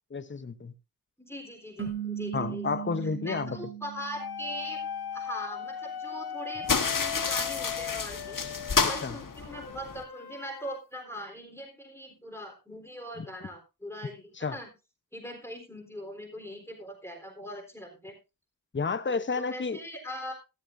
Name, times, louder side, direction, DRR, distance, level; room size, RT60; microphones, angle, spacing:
voice 1, 0.1-0.7 2.3-3.6 9.0-9.2 13.2-13.3 14.4-14.6 18.7-19.8, left 4 dB, 30° left, 0.9 m, -31 dB
voice 2, 1.2-2.7 3.0-4.8 5.1-8.4 8.8-14.7 15.1-18.1 19.1-20.3, equal, 5° left, 3.9 m, -41 dB
sound 1, 1.8-5.1, right 10 dB, 35° right, 4.4 m, -38 dB
sound 2, 4.2-8.9 9.5-10.8, left 8 dB, 80° left, 0.8 m, -38 dB
sound 3, 6.6-10.0, left 5 dB, 55° left, 1.5 m, -30 dB
14.0 x 12.0 x 2.7 m
cardioid pair, 55°, 38 cm